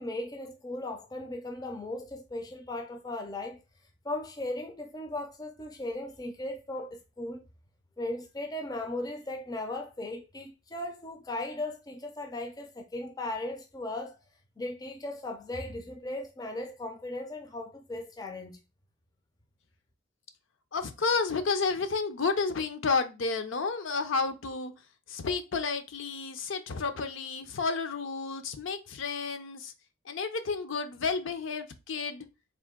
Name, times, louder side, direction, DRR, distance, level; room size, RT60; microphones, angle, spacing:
voice 1, 0.0-3.6 4.0-7.4 8.0-14.2 14.6-18.6, left 2 dB, 20° left, 0.4 m, -37 dB
voice 2, 20.7-24.7 25.1-29.7 30.1-32.3, left 4 dB, 65° left, 0.5 m, -31 dB
3.6 x 2.6 x 3.6 m
head